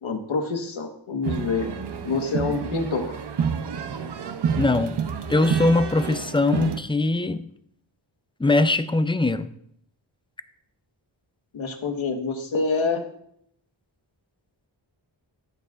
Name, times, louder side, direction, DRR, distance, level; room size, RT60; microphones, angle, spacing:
voice 1, 0.0-1.7 2.0-3.2 11.5-13.0, left 4 dB, 90° left, 4 dB, 1.3 m, -26 dB
sound 1, 1.2-6.8, right 7 dB, 60° right, 0.7 m, -29 dB
voice 2, 4.5-5.0 5.3-7.5 8.4-9.5, left 2 dB, 10° left, 12 dB, 0.3 m, -21 dB
13.5 x 8.7 x 2.4 m, 0.70 s
wide cardioid pair, 125°, 46 cm